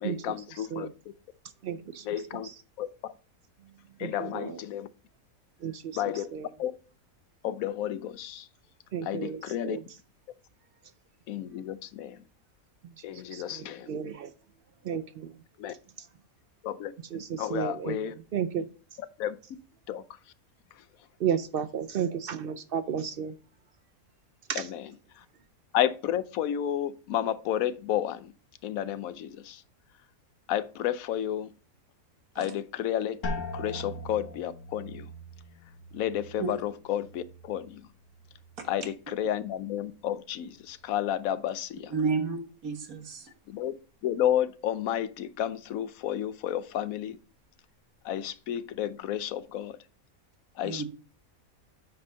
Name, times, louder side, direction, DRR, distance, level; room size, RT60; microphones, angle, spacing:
voice 1, 0.0-0.9 2.0-2.5 2.8-3.1 4.0-4.9 5.9-6.7 7.4-8.5 9.0-9.8 11.3-12.2 13.0-13.9 15.6-15.7 16.6-16.9 17.4-18.2 19.2-19.4 19.9-20.0 24.5-25.2 25.7-28.3 28.6-29.6 30.5-31.5 32.4-35.1 35.9-37.8 38.6-41.9 43.5-43.7 44.0-47.2 48.0-49.8 50.6-50.8, left 11 dB, 75° left, 1.1 m, -31 dB
voice 2, 1.6-2.5 4.0-4.6 5.6-6.0 6.3-6.5 8.9-9.8 12.8-12.9 13.3-14.3 14.8-15.4 16.0-16.1 17.1-18.7 21.2-23.3 24.5-24.7, right 8 dB, 60° right, 0.6 m, -33 dB
sound 1, 33.2-38.9 39.2-39.9 40.4-40.8, left 2 dB, 60° left, 1.8 m, -41 dB
voice 3, 41.9-43.3 50.6-50.8, right 4 dB, 75° right, 1.8 m, -31 dB
8.8 x 5.5 x 3.8 m
omnidirectional pair, 1.5 m